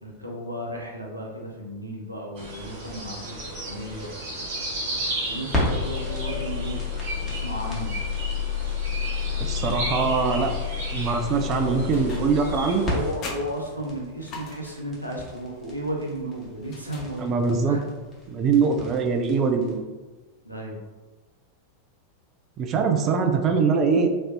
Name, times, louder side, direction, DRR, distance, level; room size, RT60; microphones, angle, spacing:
voice 1, 0.0-4.1 5.3-8.0 11.5-11.8 12.4-17.8 20.4-20.8, equal, 90° right, -2 dB, 0.6 m, -34 dB
sound 1, 2.3-13.1, right 1 dB, 50° right, 1.0 m, -34 dB
sound 2, 4.5-19.7, left 5 dB, 10° left, 1.0 m, -31 dB
voice 2, 9.4-10.5 10.9-12.8 17.2-17.8 18.3-19.8 22.6-24.1, right 5 dB, 30° right, 5 dB, 0.3 m, -23 dB
sound 3, 11.9-12.5 12.9-15.0 16.6-17.6, left 3 dB, 35° left, 0.5 m, -41 dB
3.2 x 2.5 x 2.5 m, 1.3 s
figure-of-eight pair, 90°, 0 cm